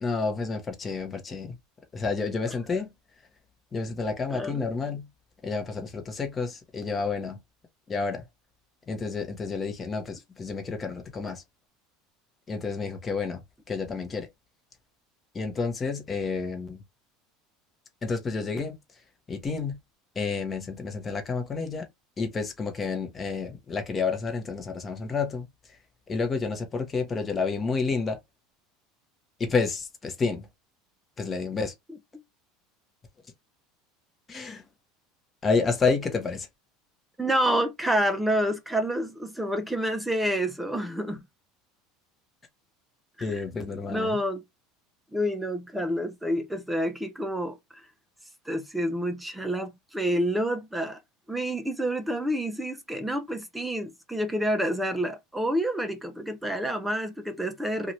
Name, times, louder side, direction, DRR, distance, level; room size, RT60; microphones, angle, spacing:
voice 1, 0.0-1.6 1.9-2.9 3.7-5.1 5.4-7.4 7.9-8.2 8.9-11.4 12.5-13.4 13.7-14.3 15.3-16.8 18.0-18.8 19.3-19.8 20.1-21.9 22.2-25.5 26.1-28.2 29.4-30.5 31.2-31.7 34.3-34.6 35.4-36.5 43.2-44.2, left 4 dB, 25° left, 0.9 m, -30 dB
voice 2, 4.3-4.6 37.2-41.2 43.2-43.4 43.9-44.4 45.1-47.6 48.5-51.0 51.3-57.9, equal, 5° right, 0.6 m, -28 dB
2.7 x 2.4 x 3.1 m
supercardioid pair, 110°, 0 cm